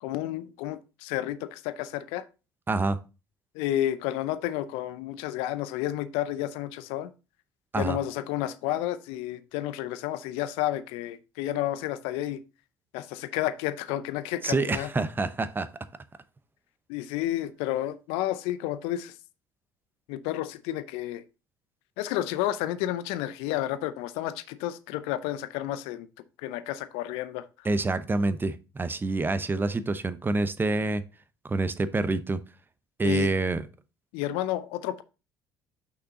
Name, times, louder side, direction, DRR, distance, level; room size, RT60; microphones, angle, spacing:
voice 1, 0.0-2.2 3.5-7.1 7.7-12.4 12.9-14.9 16.9-19.1 20.1-21.2 22.0-26.1 26.4-27.4 33.0-33.3 34.1-35.0, left 13 dB, 70° left, 0.6 m, -31 dB
voice 2, 2.7-3.0 7.7-8.0 14.4-15.7 27.6-31.0 31.4-32.4 33.0-33.6, right 3 dB, 20° right, 0.8 m, -27 dB
6.2 x 5.9 x 3.8 m
hypercardioid pair, 55°, 10 cm